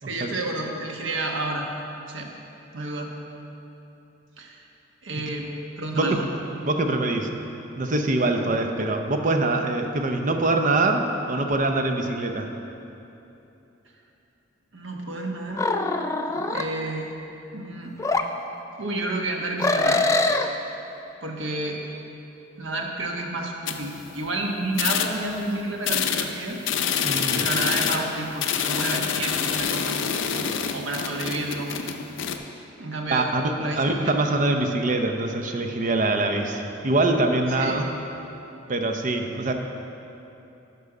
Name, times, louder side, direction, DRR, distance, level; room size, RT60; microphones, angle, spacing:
voice 1, 0.0-1.6 2.1-2.3 2.7-3.1 4.4-4.6 5.0-6.2 14.7-15.7 16.3-17.1 17.5-17.9 18.8-20.0 21.2-21.8 22.6-26.6 27.3-30.1 30.7-31.7 32.8-33.3 33.6-34.1 37.6-37.8, right 2 dB, 75° right, 1 dB, 1.1 m, -30 dB
voice 2, 5.9-6.3 6.6-7.4 7.8-12.5 27.0-27.4 33.1-37.9 38.7-39.5, right 2 dB, 40° right, 4 dB, 0.7 m, -24 dB
sound 1, 15.6-16.6 18.0-18.2 19.6-20.5, left 2 dB, 15° left, 0.3 m, -23 dB
sound 2, 23.7-24.3 24.7-25.4 25.8-32.4, left 7 dB, 75° left, 0.5 m, -27 dB
11.5 x 5.5 x 4.9 m, 2.9 s
head